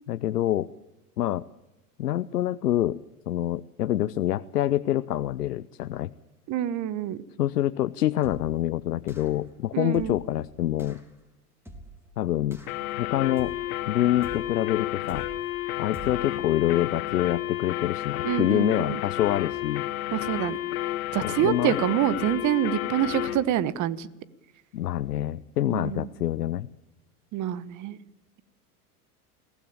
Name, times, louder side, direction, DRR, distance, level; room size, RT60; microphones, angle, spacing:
voice 1, 0.1-0.7 1.2-1.4 2.0-3.0 3.3-6.1 7.4-11.0 12.2-12.6 13.0-13.5 13.9-15.3 15.8-19.9 21.2-21.8 24.7-26.7, left 13 dB, 85° left, 13 dB, 0.7 m, -26 dB
voice 2, 6.5-7.2 9.7-10.2 18.2-19.0 20.1-20.6 21.1-24.1 25.7-26.0 27.3-28.0, right 11 dB, 40° right, 18 dB, 1.3 m, -26 dB
sound 1, 8.2-8.7 9.1-9.5 9.9-10.4 10.8-11.1 11.7-12.1 12.5-12.9 13.4-13.8 14.2-14.6 15.1-15.5 15.9-16.4, right 1 dB, 5° right, 3.3 m, -45 dB
sound 2, 12.7-23.4, left 15 dB, 65° left, 2.3 m, -31 dB
21.5 x 16.0 x 8.8 m, 0.97 s
hypercardioid pair, 95°, 46 cm